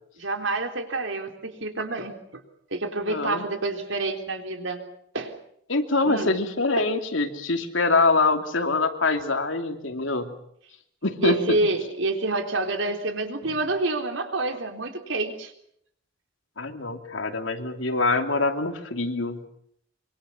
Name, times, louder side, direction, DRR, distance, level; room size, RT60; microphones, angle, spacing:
voice 1, 0.2-2.2 2.7-4.8 5.1-5.3 6.0-6.3 6.8-6.9 11.2-15.5, right 2 dB, 75° right, 6 dB, 3.7 m, -28 dB
voice 2, 3.1-3.4 5.7-10.3 11.0-11.6 13.4-13.6 16.6-19.4, left 3 dB, 80° left, 6 dB, 2.8 m, -24 dB
25.5 x 24.5 x 7.1 m, 0.70 s
head